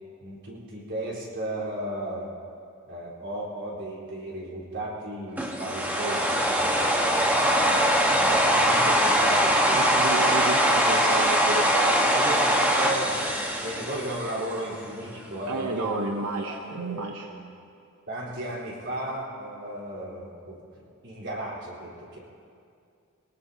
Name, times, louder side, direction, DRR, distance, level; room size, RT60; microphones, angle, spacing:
voice 1, 0.2-2.3 2.9-7.7 8.1-10.0 12.1-17.4 18.1-20.6 21.0-22.2, right 1 dB, 55° right, -5 dB, 4.3 m, -35 dB
sound 1, 5.4-14.6, equal, 10° right, 1.4 m, -22 dB
voice 2, 9.7-12.1 15.5-17.3, right 3 dB, 90° right, 2 dB, 0.9 m, -31 dB
23.5 x 19.0 x 2.9 m, 2.4 s
head